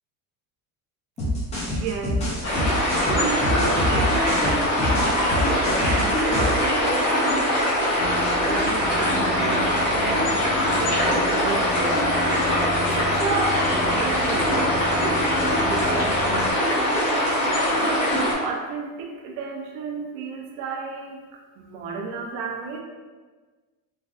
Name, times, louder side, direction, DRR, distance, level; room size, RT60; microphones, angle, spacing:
sound 1, 1.2-6.7, left 1 dB, 20° left, 0.5 m, -26 dB
voice 1, 1.7-2.7 3.2-4.7 4.9-6.9 8.0-12.0 12.8-16.5 17.7-21.2 21.6-22.8, right 4 dB, 70° right, 1 dB, 0.6 m, -33 dB
sound 2, 2.4-18.3, equal, 55° left, 1.0 m, -22 dB
sound 3, 8.0-16.5, left 3 dB, 75° left, 0.5 m, -33 dB
3.1 x 2.5 x 2.4 m, 1.3 s
cardioid pair, 180°, 37 cm